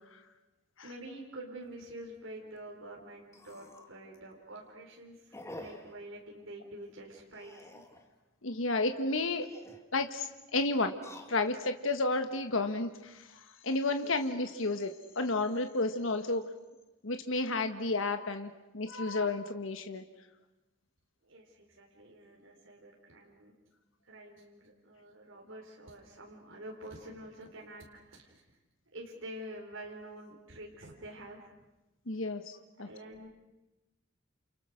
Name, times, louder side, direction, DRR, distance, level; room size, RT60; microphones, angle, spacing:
voice 1, 0.8-7.8 14.0-14.1 21.2-23.6 24.0-28.4 28.9-31.5 32.8-33.3, right 1 dB, 70° right, -1 dB, 4.5 m, -47 dB
sound 1, 1.6-1.8 2.2-2.3 2.6-2.7 3.3-4.0 4.4-4.7 5.3-6.0 7.3-8.1 9.3-9.9 10.9-11.7 12.3-12.9, left 1 dB, 15° left, 2.2 m, -49 dB
voice 2, 8.4-9.5 9.9-11.0 11.3-16.5 17.0-20.0 32.1-32.9, left 2 dB, 70° left, 7 dB, 1.5 m, -32 dB
29.5 x 29.0 x 6.5 m, 1.0 s
head